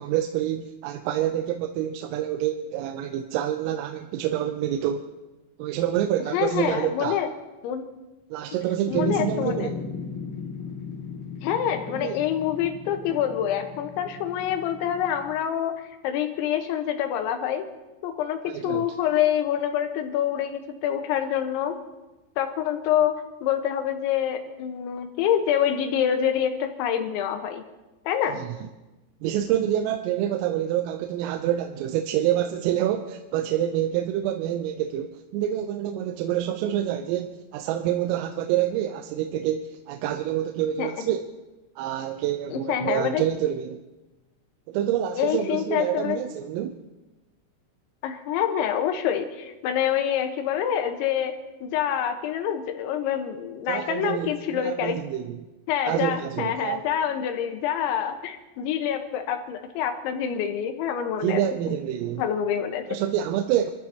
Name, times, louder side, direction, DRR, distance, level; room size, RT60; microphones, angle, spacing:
voice 1, 0.0-5.1 5.6-7.2 8.3-9.8 11.9-12.2 18.5-18.9 28.4-28.5 29.2-41.3 41.8-43.8 44.7-46.8 53.7-55.5 55.9-56.8 61.2-62.2 62.9-63.7, right 11 dB, 85° right, 5 dB, 3.4 m, -27 dB
voice 2, 6.3-7.3 7.6-7.8 8.9-9.7 11.4-17.7 18.0-21.8 22.4-27.6 28.1-28.4 40.8-40.9 42.5-43.2 45.2-46.2 48.0-55.0 55.7-61.8 62.2-62.9, left 9 dB, 75° left, 6 dB, 3.3 m, -26 dB
sound 1, 8.9-15.4, left 5 dB, 50° left, 3.7 m, -36 dB
27.5 x 14.0 x 2.9 m, 1.1 s
omnidirectional pair, 5.9 m